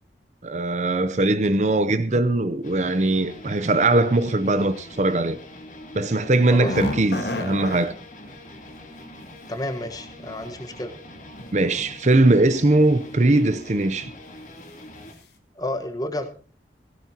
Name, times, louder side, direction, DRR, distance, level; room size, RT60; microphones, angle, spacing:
voice 1, 0.4-5.4 5.9-7.9 11.5-14.1, right 2 dB, 40° right, 0.7 m, -20 dB
sound 1, 2.6-15.1, left 1 dB, 45° left, 2.7 m, -43 dB
texture plastic, 6.4-7.9 10.1-10.2 11.1-11.5 11.9-12.1 12.8-13.1 13.5-13.7 14.1-14.2, left 1 dB, 65° left, 1.8 m, -30 dB
voice 2, 9.5-10.9 15.5-16.3, left 1 dB, 20° left, 1.3 m, -30 dB
16.5 x 16.0 x 2.9 m
head